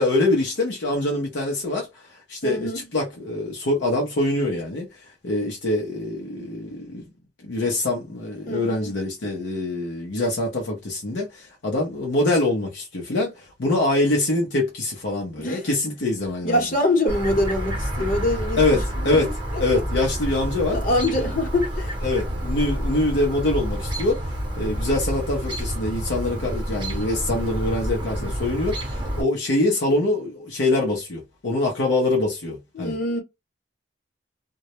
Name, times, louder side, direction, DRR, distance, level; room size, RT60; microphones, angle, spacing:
voice 1, 0.0-7.0 7.4-16.7 18.6-19.3 19.6-20.8 21.1-21.3 22.0-33.0, left 2 dB, 75° left, 0.6 m, -24 dB
voice 2, 2.4-2.8 8.5-8.9 15.4-15.6 16.4-18.8 20.7-21.9 28.0-28.3 32.7-33.2, left 1 dB, 50° left, 0.9 m, -24 dB
Chirp tweet, 17.1-29.2, equal, 25° right, 0.8 m, -28 dB
2.2 x 2.0 x 2.8 m
head